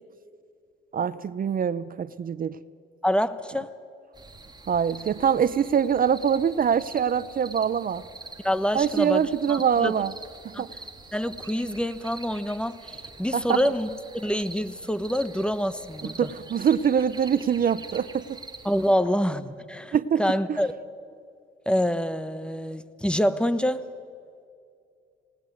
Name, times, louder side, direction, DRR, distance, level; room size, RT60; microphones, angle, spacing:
voice 1, 0.9-2.6 4.7-8.0 8.7-10.1 10.4-10.7 13.3-13.6 16.0-18.4 19.9-20.2 20.5-20.6, right 8 dB, 45° right, 16 dB, 0.7 m, -24 dB
voice 2, 3.0-3.7 8.4-10.0 10.5-10.6 11.1-13.9 14.1-16.3 18.6-20.7 21.7-23.8, equal, 5° left, 14 dB, 1.1 m, -26 dB
sound 1, 4.1-18.9, right 3 dB, 20° right, 2.3 m, -45 dB
27.5 x 18.5 x 9.3 m, 2.4 s
cardioid pair, 90°, 20 cm